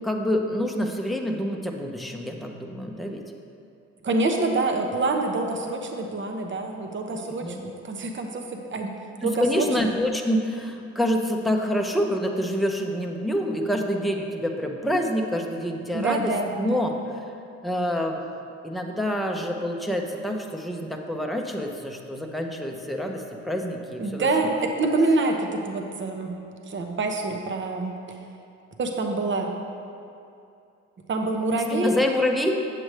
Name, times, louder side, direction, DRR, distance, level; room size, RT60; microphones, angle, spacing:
voice 1, 0.0-3.2 7.1-7.7 9.2-17.3 17.6-18.2 18.6-24.5 31.7-32.5, equal, ahead, 1 dB, 0.7 m, -27 dB
voice 2, 4.0-8.4 8.7-8.9 9.2-9.7 15.9-16.8 24.0-26.4 26.7-28.2 28.8-29.5 31.1-31.9, right 3 dB, 40° right, 3 dB, 0.9 m, -26 dB
7.8 x 7.5 x 3.3 m, 2.6 s
cardioid pair, 90°, 30 cm